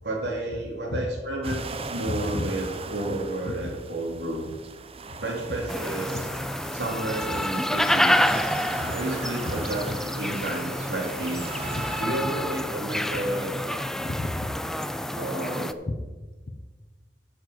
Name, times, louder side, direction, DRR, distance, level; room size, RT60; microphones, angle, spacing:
voice 1, 0.0-1.6 1.9-4.5 5.2-6.3 6.7-8.2 8.9-11.4 12.0-13.6 15.1-15.7, right 1 dB, 75° right, -1 dB, 2.8 m, -31 dB
sound 1, 1.4-12.0, right 4 dB, 35° right, 0.6 m, -40 dB
voice 2, 2.1-2.5 3.1-3.2 3.4-3.7 5.1-5.2 6.1-6.3 6.6-6.7 8.3-8.4 8.7-9.0 9.5-10.0 11.6-12.0 14.0-14.5 15.9-16.0 16.5-16.6, left 1 dB, 45° left, 10 dB, 0.7 m, -33 dB
sound 2, 5.7-15.7, left 1 dB, 5° left, 0.3 m, -28 dB
8.1 x 7.4 x 6.5 m, 1.3 s
head